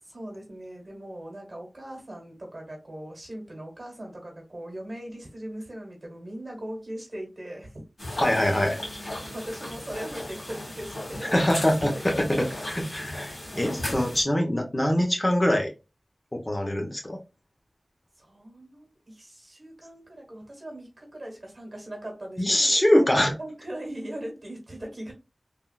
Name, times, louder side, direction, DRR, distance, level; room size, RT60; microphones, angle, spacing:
voice 1, 0.0-7.7 9.3-11.3 11.9-12.4 13.5-14.3 14.9-15.2 18.2-22.7 23.4-25.1, right 1 dB, 50° right, 0 dB, 1.4 m, -40 dB
sound 1, 8.0-14.2, left 1 dB, 70° left, 1.8 m, -36 dB
voice 2, 8.2-8.8 11.3-15.7 16.3-17.2 22.4-23.3, left 1 dB, 30° left, 2 dB, 0.9 m, -23 dB
3.6 x 2.3 x 2.4 m, 0.29 s
wide cardioid pair, 45°, 0 cm